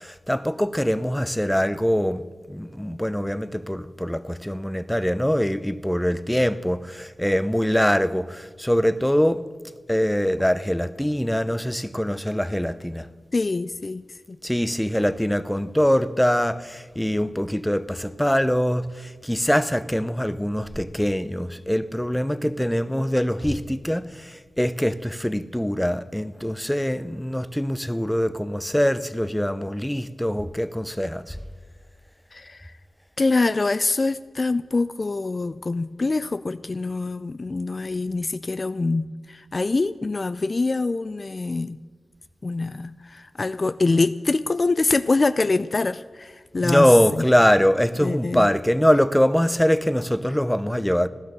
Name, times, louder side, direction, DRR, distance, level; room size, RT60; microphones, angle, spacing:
voice 1, 0.0-2.2 2.5-9.5 9.9-13.1 14.4-31.4 46.6-51.1, equal, 5° left, 0.7 m, -23 dB
voice 2, 13.3-14.4 32.3-32.7 33.2-41.8 42.4-46.9 47.2-47.3 48.0-48.5, left 3 dB, 40° left, 0.4 m, -25 dB
15.5 x 12.0 x 6.7 m
cardioid pair, 60°, 0 cm